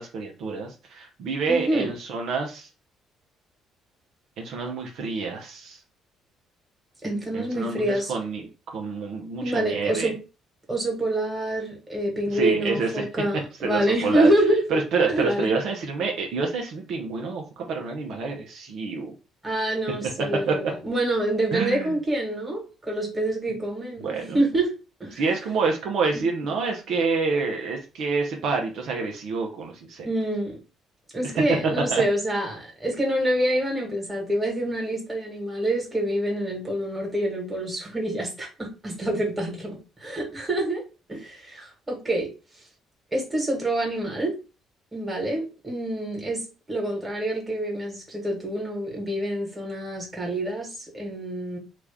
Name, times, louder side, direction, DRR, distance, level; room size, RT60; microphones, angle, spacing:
voice 1, 0.0-2.7 4.4-5.8 7.3-10.1 12.3-13.1 13.6-14.3 14.7-19.1 20.0-20.1 20.5-20.6 21.5-22.0 24.0-24.4 25.1-30.1 31.9-32.0, right 4 dB, 70° right, 0.8 m, -27 dB
voice 2, 1.5-1.9 7.0-8.1 9.4-10.2 10.7-14.6 15.1-15.5 19.4-24.7 25.0-25.2 30.0-30.6 31.1-40.8 41.1-42.3 43.1-44.3 44.9-51.6, right 1 dB, 15° right, 1.7 m, -26 dB
3.0 x 2.5 x 3.5 m
cardioid pair, 90°, 0 cm